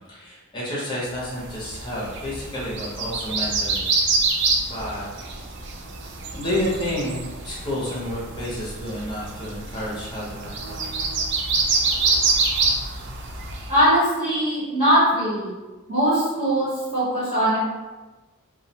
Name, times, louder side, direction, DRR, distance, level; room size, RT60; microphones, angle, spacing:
voice 1, 0.1-3.9 4.7-5.0 6.3-7.2 7.4-10.9, left 1 dB, 20° left, -6 dB, 0.7 m, -30 dB
sound 1, 1.4-13.8, right 3 dB, 55° right, 0.3 m, -26 dB
voice 2, 13.7-15.5 15.9-17.6, equal, 35° right, -11 dB, 0.9 m, -21 dB
2.3 x 2.1 x 2.7 m, 1.2 s
head